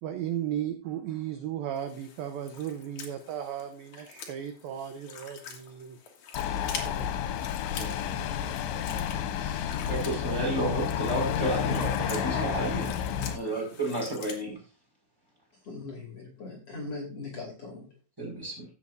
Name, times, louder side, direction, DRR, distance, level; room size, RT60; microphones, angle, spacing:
voice 1, 0.0-6.0 6.7-7.3, right 10 dB, 75° right, 2.2 m, -35 dB
sound 1, 1.7-14.4, left 6 dB, 55° left, 2.6 m, -46 dB
sound 2, 6.3-13.4, left 9 dB, 85° left, 3.2 m, -31 dB
voice 2, 7.6-12.9 13.1-14.6 18.2-18.7, right 2 dB, 5° right, 4.6 m, -33 dB
Chicken rooster, 9.1-14.2, right 2 dB, 45° right, 1.6 m, -43 dB
voice 3, 15.5-18.0, left 3 dB, 40° left, 3.2 m, -40 dB
15.5 x 7.4 x 2.6 m
omnidirectional pair, 5.1 m